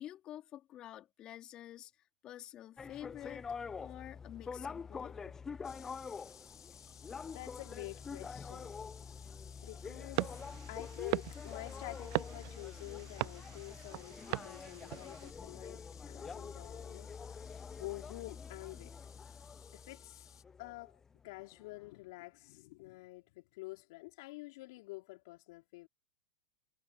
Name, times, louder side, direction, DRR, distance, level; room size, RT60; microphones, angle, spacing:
voice 1, 0.0-3.5 3.8-5.2, left 12 dB, 35° left, 3.7 m, -49 dB
sound 1, 2.8-21.4, left 5 dB, 15° left, 0.6 m, -46 dB
sound 2, 5.6-20.4, left 8 dB, 85° left, 2.6 m, -59 dB
voice 2, 7.3-8.9 9.6-18.9 19.7-20.3 20.6-25.9, left 22 dB, 60° left, 3.5 m, -49 dB
sound 3, 10.1-15.3, right 33 dB, 50° right, 0.3 m, -40 dB
hypercardioid pair, 105°, 2 cm